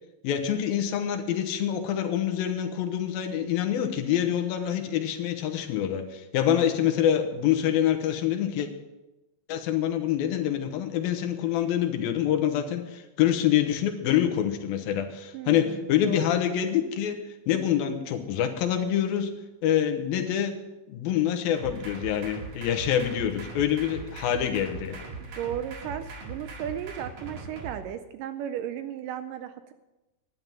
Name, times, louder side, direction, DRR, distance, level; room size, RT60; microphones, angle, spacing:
voice 1, 0.2-8.7 9.5-17.2 17.5-20.6 20.9-25.0, left 10 dB, 80° left, 6 dB, 2.8 m, -26 dB
voice 2, 15.3-16.4 25.2-29.7, right 10 dB, 80° right, 10 dB, 2.0 m, -35 dB
sound 1, 21.6-27.8, right 4 dB, 55° right, 2.9 m, -40 dB
11.0 x 10.5 x 5.7 m, 1.0 s
omnidirectional pair, 4.3 m